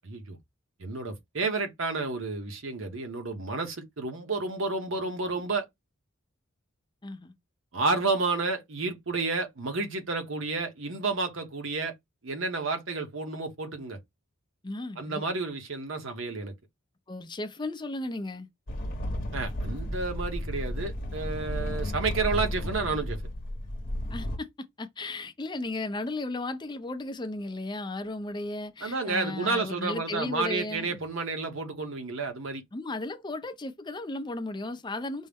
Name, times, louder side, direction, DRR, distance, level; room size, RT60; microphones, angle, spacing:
voice 1, 0.0-0.4 0.8-5.7 7.7-11.9 12.2-14.0 15.0-16.5 19.3-23.2 28.8-32.6, right 3 dB, 65° right, 0.9 m, -31 dB
voice 2, 7.0-7.3 14.6-15.2 17.1-18.5 24.1-24.5 24.8-31.0 32.7-35.3, left 2 dB, 20° left, 0.5 m, -35 dB
sound 1, 18.7-24.4, left 1 dB, 40° left, 0.9 m, -33 dB
5.3 x 2.1 x 3.4 m
head